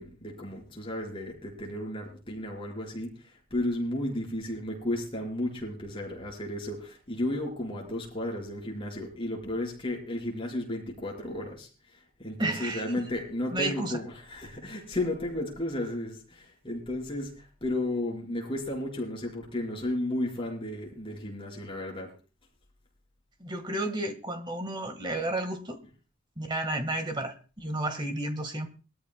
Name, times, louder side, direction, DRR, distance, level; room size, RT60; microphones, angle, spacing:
voice 1, 0.0-22.1, left 1 dB, 25° left, -1 dB, 4.6 m, -33 dB
voice 2, 12.4-13.1 13.5-14.0 23.4-25.8 26.4-28.7, right 1 dB, 20° right, 8 dB, 1.6 m, -32 dB
22.0 x 13.5 x 2.2 m, 0.36 s
head